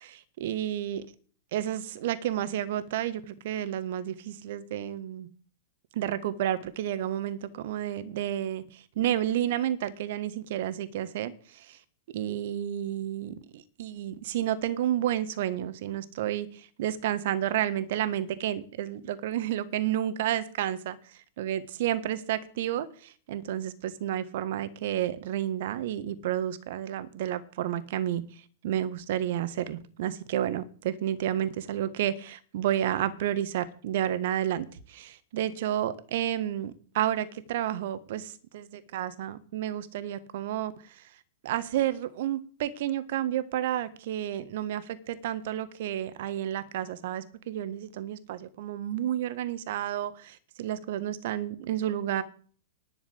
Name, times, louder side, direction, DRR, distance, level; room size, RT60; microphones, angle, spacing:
voice 1, 0.4-1.0 1.5-5.3 5.9-11.8 12.1-21.0 21.4-28.2 28.6-41.0 41.4-52.2, right 11 dB, 55° right, 1.5 m, -31 dB
11.0 x 7.1 x 8.5 m
figure-of-eight pair, 100°, 0 cm